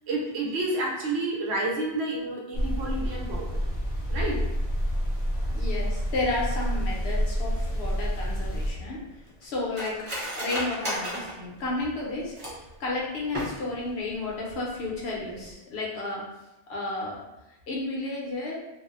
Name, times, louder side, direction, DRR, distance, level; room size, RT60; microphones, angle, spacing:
voice 1, 0.1-3.7 4.1-4.4, right 2 dB, 85° right, -2 dB, 0.9 m, -30 dB
sound 1, 2.5-8.7, equal, 40° left, 0.5 m, -28 dB
voice 2, 5.5-9.0 9.4-10.0 10.4-16.2 16.7-17.2 17.7-18.6, left 2 dB, 75° left, -4 dB, 0.9 m, -32 dB
Cutlery silverware, 8.3-12.8 13.2-13.9 14.2-14.3 14.7-15.0 15.4-15.5, equal, 35° right, 0.7 m, -35 dB
2.5 x 2.0 x 2.4 m, 0.97 s
omnidirectional pair, 1.1 m